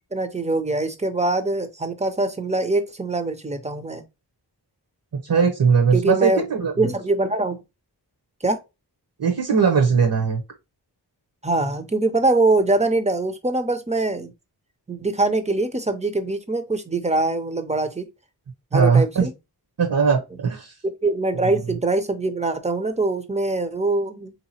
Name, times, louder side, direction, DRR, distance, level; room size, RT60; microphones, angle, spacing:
voice 1, 0.1-4.0 5.9-6.4 6.8-7.6 8.4-8.6 11.4-14.3 14.9-18.1 18.7-19.3 20.8-24.3, right 2 dB, 15° right, 0.5 m, -23 dB
voice 2, 5.2-6.9 9.2-10.4 18.7-19.3 19.8-20.7 21.4-21.6, right 6 dB, 60° right, 0.8 m, -19 dB
3.6 x 2.8 x 2.7 m
wide cardioid pair, 85°, 40 cm